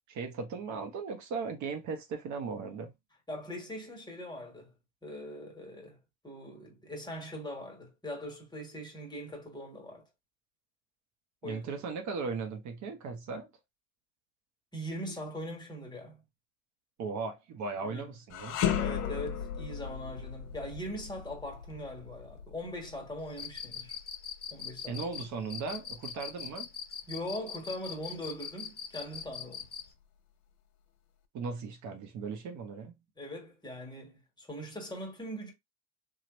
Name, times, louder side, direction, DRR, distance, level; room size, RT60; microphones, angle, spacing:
voice 1, 0.1-2.9 11.4-13.5 17.0-18.6 24.9-26.7 31.3-33.0, right 4 dB, 55° right, 0.9 m, -37 dB
voice 2, 3.3-4.7 5.0-6.0 6.2-10.1 11.4-11.6 14.7-16.2 17.8-18.1 18.8-24.0 24.5-25.0 27.1-29.7 33.2-35.5, equal, 10° left, 1.4 m, -41 dB
sound 1, 18.3-27.6 28.0-28.2 29.0-29.9, left 9 dB, 60° left, 0.8 m, -37 dB
Cricket, 23.3-29.9, left 8 dB, 30° left, 0.8 m, -41 dB
3.0 x 2.4 x 2.9 m
supercardioid pair, 85°, 35 cm